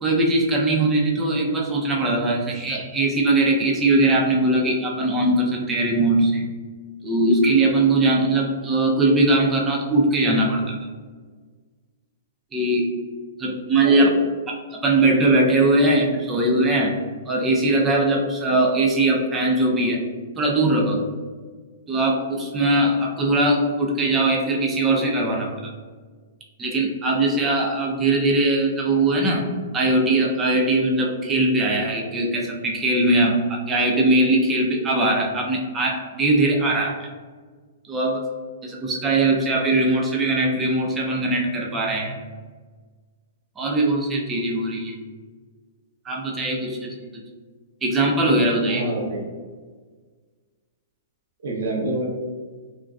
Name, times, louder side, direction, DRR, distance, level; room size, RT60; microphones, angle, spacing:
voice 1, 0.0-6.5 7.0-10.8 12.5-12.9 13.4-14.1 14.5-16.9 17.3-20.0 20.4-21.1 21.9-25.5 26.6-29.5 29.7-36.9 37.9-38.2 38.6-42.2 43.6-45.0 46.0-47.1 47.8-48.9, right 2 dB, 15° right, -1 dB, 0.4 m, -20 dB
voice 2, 13.8-14.2 48.7-49.2 51.4-52.1, right 2 dB, 75° right, -1 dB, 0.6 m, -27 dB
2.5 x 2.2 x 2.3 m, 1.5 s
hypercardioid pair, 130°, 0 cm